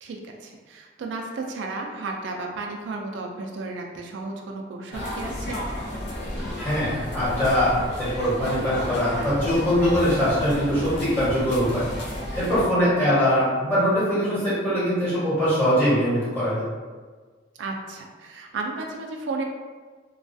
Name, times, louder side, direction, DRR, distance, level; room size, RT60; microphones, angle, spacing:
voice 1, 0.0-5.6 13.0-13.2 17.6-19.4, right 3 dB, 80° right, 1 dB, 0.3 m, -33 dB
sound 1, 4.9-12.7, left 1 dB, 65° left, 0.5 m, -32 dB
voice 2, 6.6-7.7 8.0-11.9 12.3-16.7, equal, 10° left, -12 dB, 1.1 m, -22 dB
2.3 x 2.3 x 2.5 m, 1.4 s
head